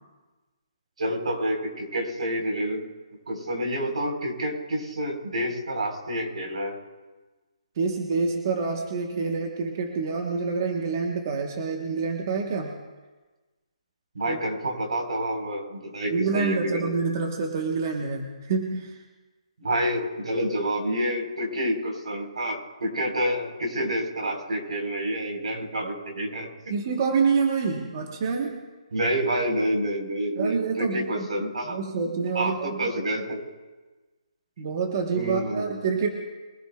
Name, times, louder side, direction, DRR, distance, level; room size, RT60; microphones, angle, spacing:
voice 1, 1.0-2.8 3.3-6.8 14.1-17.0 19.6-26.5 28.9-31.8 32.3-33.4 35.1-35.8, right 1 dB, 75° right, 2 dB, 3.9 m, -28 dB
voice 2, 7.8-12.8 14.2-14.4 16.1-19.0 26.7-28.6 30.4-31.3 31.7-33.2 34.6-36.1, right 5 dB, 30° right, 2 dB, 1.1 m, -27 dB
23.0 x 16.0 x 2.3 m, 1.2 s
hypercardioid pair, 170°, 4 cm